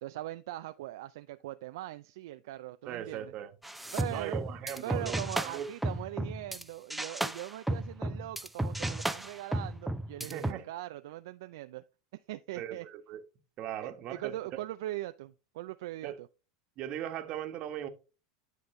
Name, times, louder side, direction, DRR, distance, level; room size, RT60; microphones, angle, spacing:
voice 1, 0.0-3.3 3.9-4.4 4.8-11.8 12.3-12.9 13.8-16.3, right 15 dB, 70° right, 0.4 m, -41 dB
voice 2, 2.8-3.5 4.1-5.7 10.2-10.6 12.6-13.2 13.6-14.4 16.0-16.2 16.8-17.9, right 10 dB, 45° right, 1.3 m, -39 dB
sound 1, 3.6-6.6 6.9-10.5, right 1 dB, 5° right, 0.6 m, -34 dB
10.0 x 5.2 x 3.2 m
hypercardioid pair, 95°, 2 cm